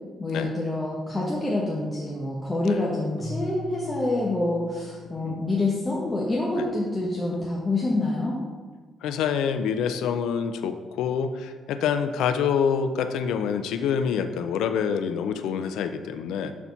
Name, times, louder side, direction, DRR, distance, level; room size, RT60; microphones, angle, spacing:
voice 1, 0.2-8.4, left 2 dB, 20° left, -5 dB, 1.2 m, -27 dB
Keyboard (musical), 3.2-6.3, left 1 dB, 70° left, 1.0 m, -41 dB
voice 2, 5.2-5.5 6.6-6.7 9.0-16.5, left 7 dB, 85° left, 9 dB, 0.4 m, -26 dB
7.0 x 4.2 x 5.8 m, 1.5 s
cardioid pair, 90°, 0 cm